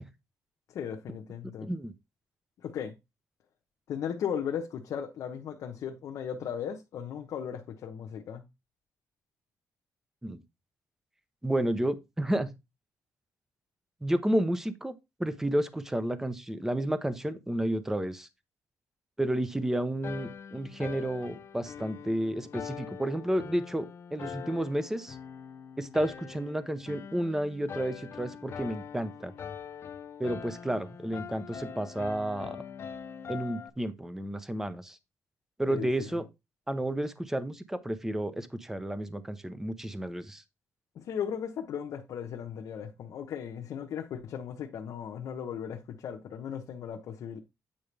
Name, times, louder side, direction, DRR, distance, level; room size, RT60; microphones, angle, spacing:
voice 1, 0.7-1.7 2.6-2.9 3.9-8.4 35.7-36.1 41.0-47.4, left 8 dB, 70° left, 0.9 m, -36 dB
voice 2, 1.6-1.9 10.2-10.4 11.4-12.5 14.0-18.3 19.2-25.2 25.8-29.3 30.2-32.6 33.3-35.0 35.6-36.3 36.7-40.4, right 1 dB, 5° right, 0.7 m, -31 dB
sound 1, 20.0-33.7, left 7 dB, 45° left, 0.5 m, -43 dB
8.8 x 4.9 x 3.3 m
cardioid pair, 135°, 6 cm